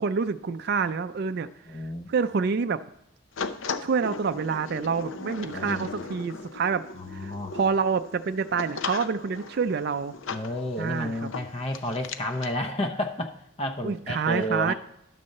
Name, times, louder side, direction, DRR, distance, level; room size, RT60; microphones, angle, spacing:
voice 1, 0.0-1.8 2.1-2.8 3.8-6.8 7.1-10.1 10.8-11.3 13.8-14.7, right 5 dB, 50° right, 10 dB, 0.4 m, -27 dB
voice 2, 1.7-2.1 5.4-5.9 6.9-7.6 10.3-14.7, left 1 dB, 30° left, 4 dB, 0.6 m, -31 dB
sound 1, 3.4-12.5, left 5 dB, 70° left, 0.6 m, -38 dB
11.0 x 4.1 x 6.5 m, 0.79 s
head